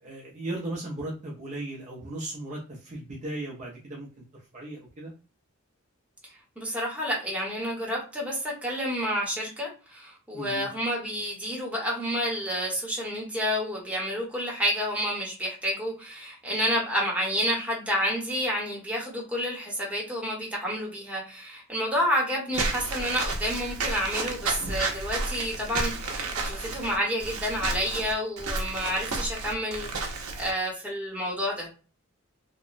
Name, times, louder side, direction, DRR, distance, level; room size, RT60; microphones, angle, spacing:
voice 1, 0.0-5.1 10.3-10.7, right 1 dB, 35° right, -4 dB, 0.5 m, -37 dB
voice 2, 6.2-31.7, equal, 5° right, -4 dB, 0.9 m, -29 dB
Walk footsteps / Squeak, 22.5-30.5, right 3 dB, 85° right, 0.6 m, -31 dB
2.9 x 2.1 x 2.4 m, 0.35 s
head